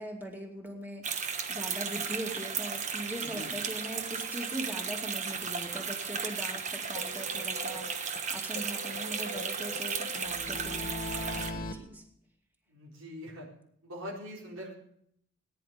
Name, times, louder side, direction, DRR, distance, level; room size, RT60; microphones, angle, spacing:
voice 1, 0.0-12.0, right 1 dB, 10° right, 1 dB, 2.4 m, -41 dB
sound 1, 1.0-11.5, right 6 dB, 35° right, 1.1 m, -35 dB
voice 2, 3.2-3.5 12.7-13.5 13.8-14.7, equal, 90° right, -5 dB, 4.1 m, -43 dB
sound 2, 5.3-5.4 5.7-5.8 6.1-6.2 6.5-6.6 6.9-8.2 8.5-11.7, left 1 dB, 45° left, 1.8 m, -41 dB
19.0 x 10.5 x 5.1 m, 0.70 s
head